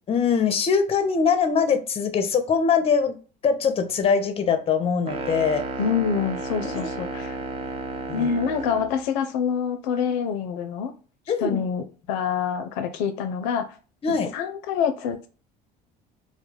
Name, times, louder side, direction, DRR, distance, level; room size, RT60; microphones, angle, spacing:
voice 1, 0.1-3.2 3.4-5.6 6.7-6.9 8.1-8.3 11.3-11.6 14.0-14.3, left 6 dB, 30° left, 9 dB, 0.5 m, -22 dB
sound 1, 5.1-9.0, right 3 dB, 30° right, 0.5 m, -32 dB
voice 2, 5.8-7.4 8.1-10.9 11.4-13.7 14.1-15.3, left 7 dB, 80° left, 8 dB, 0.4 m, -26 dB
2.2 x 2.0 x 3.1 m, 0.36 s
supercardioid pair, 85°, 21 cm